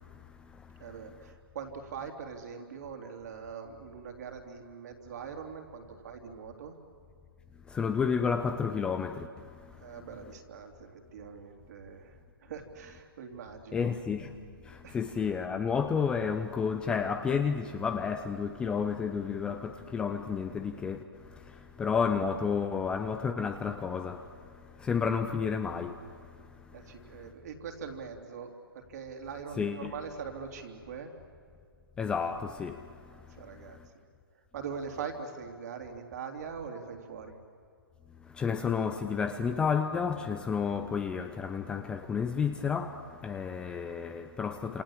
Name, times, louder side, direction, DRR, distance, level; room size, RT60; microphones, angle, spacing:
voice 1, 0.0-1.0 7.7-10.0 13.7-14.4 14.6-27.3 29.6-29.9 32.0-33.9 38.2-44.8, left 6 dB, 5° left, 0.6 m, -32 dB
voice 2, 0.8-6.7 9.8-13.9 14.8-15.0 26.7-31.1 33.1-33.8 34.5-37.4, right 6 dB, 45° right, 3.2 m, -42 dB
28.0 x 28.0 x 7.4 m
hypercardioid pair, 155°, 12 cm